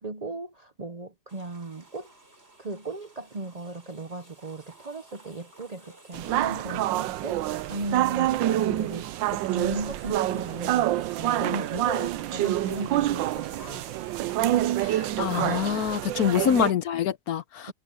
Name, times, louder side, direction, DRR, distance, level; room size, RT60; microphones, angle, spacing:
voice 1, 0.0-2.1 2.6-13.8 16.2-16.5, right 2 dB, 55° right, 0.4 m, -36 dB
sound 1, 1.3-16.4, right 2 dB, 35° right, 4.4 m, -51 dB
sound 2, 6.1-16.7, right 14 dB, 85° right, 1.3 m, -27 dB
voice 2, 14.8-17.7, left 9 dB, 65° left, 1.1 m, -26 dB
omnidirectional pair, 2.0 m